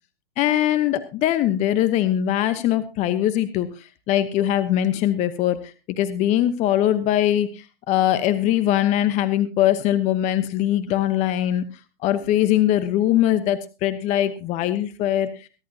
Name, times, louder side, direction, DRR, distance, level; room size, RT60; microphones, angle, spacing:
voice 1, 0.4-11.6 12.0-15.5, left 12 dB, 25° left, 13 dB, 1.0 m, -21 dB
23.0 x 11.5 x 2.8 m, 0.31 s
hypercardioid pair, 130°, 29 cm